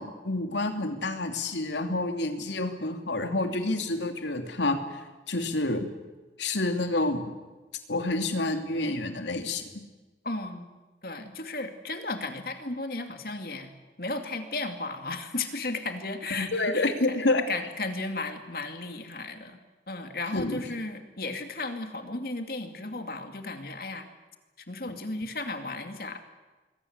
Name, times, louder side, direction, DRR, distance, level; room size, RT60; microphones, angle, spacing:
voice 1, 0.0-5.9 6.4-7.3 7.9-9.8 16.3-17.4 20.3-20.6, left 2 dB, 90° left, 6 dB, 2.9 m, -28 dB
voice 2, 10.2-10.7 11.0-13.7 14.0-17.2 17.5-19.6 19.9-24.1 24.7-26.2, left 3 dB, 55° left, 6 dB, 2.5 m, -34 dB
27.0 x 22.0 x 8.2 m, 1.2 s
head